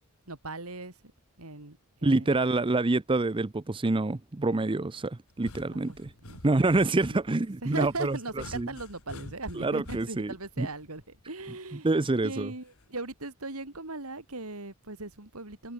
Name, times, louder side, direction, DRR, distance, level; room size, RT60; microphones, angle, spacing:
voice 1, 0.3-0.9 1.4-2.7 5.7-6.0 6.2-6.4 6.8-7.2 7.6-11.9 12.2-15.7, right 2 dB, 75° right, 3.7 m, -39 dB
voice 2, 2.0-6.1 6.4-8.2 8.5-8.7 9.6-10.7 11.8-12.5, right 2 dB, 25° right, 0.6 m, -26 dB
sound 1, 5.3-11.4 12.8-13.1, left 2 dB, 75° left, 2.7 m, -48 dB
head